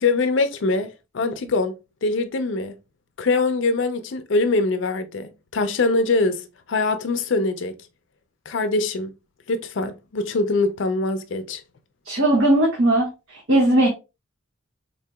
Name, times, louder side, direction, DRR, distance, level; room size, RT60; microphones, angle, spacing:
voice 1, 0.0-1.8 2.0-2.7 3.2-7.8 8.5-9.1 9.5-11.6, left 3 dB, 60° left, 0.4 m, -23 dB
voice 2, 12.1-13.9, right 1 dB, 75° right, 1.1 m, -18 dB
4.0 x 2.8 x 2.2 m
head